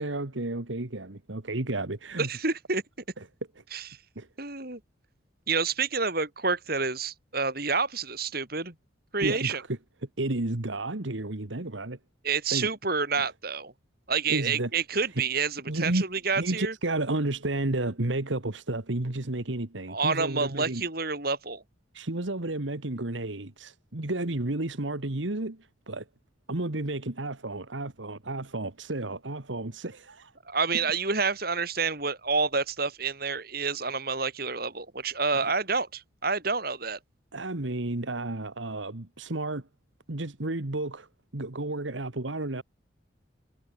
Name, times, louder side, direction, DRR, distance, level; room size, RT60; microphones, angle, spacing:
voice 1, 0.0-2.3 3.2-3.3 3.6-3.7 4.2-4.3 9.2-9.8 10.2-12.0 12.5-12.7 13.2-13.3 14.3-14.7 15.7-16.1 16.4-20.8 21.9-26.1 26.5-30.3 35.3-35.5 37.3-39.7 40.1-42.6, right 2 dB, 80° right, 1.8 m, -32 dB
voice 2, 2.2-2.8 3.7-3.8 4.4-4.8 5.5-8.7 9.1-9.6 12.2-13.7 14.1-16.7 19.9-21.6 30.5-37.0, right 4 dB, 50° right, 5.0 m, -28 dB
head